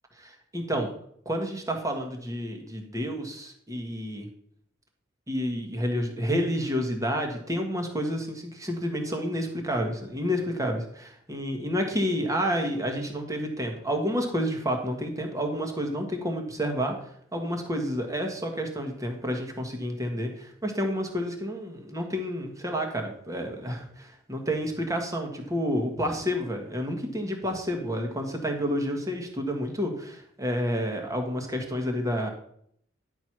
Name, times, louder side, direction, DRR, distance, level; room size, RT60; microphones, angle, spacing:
voice 1, 0.2-0.9 1.2-4.3 5.3-32.3, equal, 15° right, 3 dB, 1.5 m, -30 dB
10.5 x 4.7 x 5.9 m, 0.67 s
head